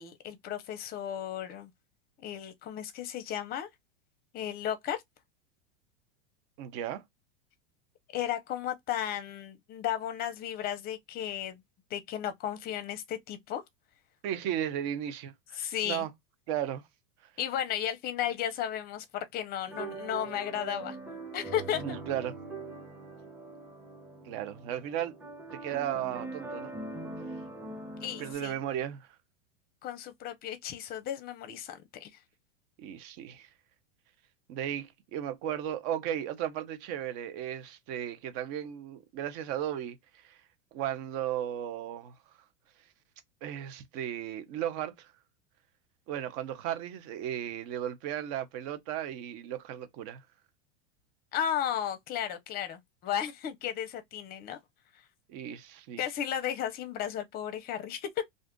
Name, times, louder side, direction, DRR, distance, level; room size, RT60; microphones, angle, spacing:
voice 1, 0.0-1.7 2.2-3.7 4.3-5.0 8.1-11.6 11.9-13.6 15.5-16.1 17.4-21.0 21.3-22.0 28.0-28.6 29.8-32.1 51.3-54.6 56.0-58.2, left 10 dB, 30° left, 0.6 m, -34 dB
voice 2, 6.6-7.0 14.2-16.1 16.5-16.8 21.8-22.4 24.2-25.1 25.5-26.7 28.2-29.1 32.8-33.5 34.5-40.4 40.7-42.1 43.4-45.1 46.1-50.2 55.3-56.0, right 10 dB, 45° right, 0.7 m, -35 dB
sound 1, 19.7-28.3, right 2 dB, 5° right, 0.8 m, -42 dB
2.6 x 2.4 x 3.6 m
supercardioid pair, 140°, 34 cm